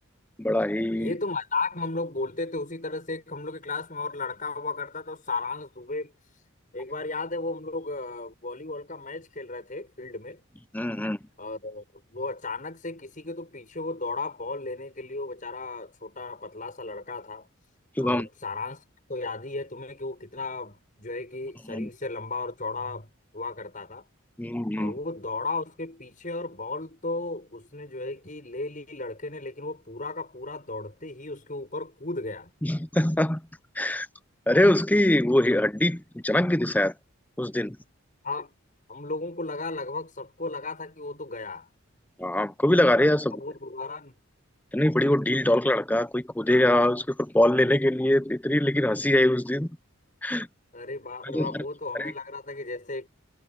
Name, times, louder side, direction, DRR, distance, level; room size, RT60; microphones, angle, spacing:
voice 1, 0.4-1.1 10.7-11.2 18.0-18.3 21.7-21.9 24.4-24.9 32.6-33.4 33.8-34.1 34.5-36.9 37.4-37.8 42.2-43.4 44.7-49.7 50.2-50.5 51.2-51.6 51.9-52.1, left 1 dB, 10° left, 0.6 m, -23 dB
voice 2, 1.0-6.1 6.7-10.4 11.4-17.5 18.0-18.8 19.1-24.1 24.8-32.5 38.2-38.5 38.9-41.7 43.3-44.1 50.7-53.1, left 3 dB, 40° left, 7.1 m, -35 dB
head